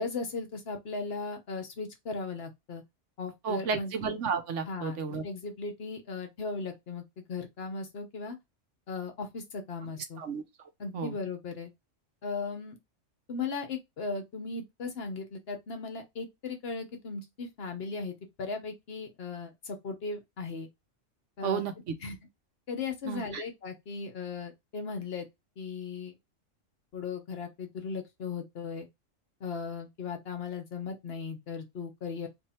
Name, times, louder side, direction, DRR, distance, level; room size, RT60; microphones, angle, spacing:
voice 1, 0.0-2.8 3.2-3.9 4.7-8.4 8.9-10.2 10.8-11.7 12.2-12.8 13.3-20.7 21.4-21.6 22.0-22.2 22.7-25.3 25.6-26.1 26.9-28.9 29.4-32.3, left 4 dB, 55° left, 1.0 m, -37 dB
voice 2, 3.4-5.2 10.2-10.4 10.9-11.2 21.4-21.9 23.0-23.4, right 6 dB, 70° right, 1.1 m, -32 dB
3.1 x 2.7 x 4.2 m
omnidirectional pair, 1.3 m